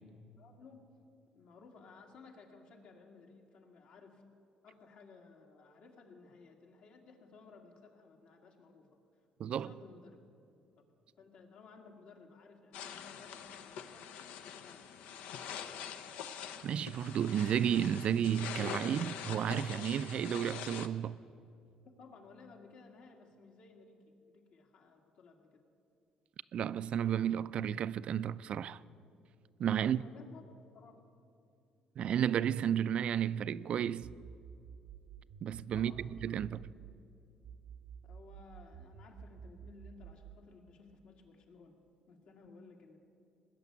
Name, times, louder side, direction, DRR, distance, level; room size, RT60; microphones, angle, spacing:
voice 1, 0.4-0.9 1.3-4.3 4.6-10.2 11.2-14.1 14.3-15.5 21.8-25.6 29.8-30.4 30.7-31.0 35.7-36.5 38.0-41.8 42.1-43.0, left 4 dB, 65° left, 2.1 m, -57 dB
voice 2, 9.4-9.7 16.6-21.2 26.5-28.8 29.6-30.0 32.0-34.1 35.4-35.9 36.2-36.5, right 9 dB, 55° right, 0.4 m, -32 dB
sound 1, 12.7-20.9, left 8 dB, 90° left, 0.7 m, -44 dB
sound 2, 34.0-37.0 37.4-40.5, right 7 dB, 90° right, 1.2 m, -51 dB
19.5 x 6.9 x 9.6 m
cardioid pair, 120°, 2 cm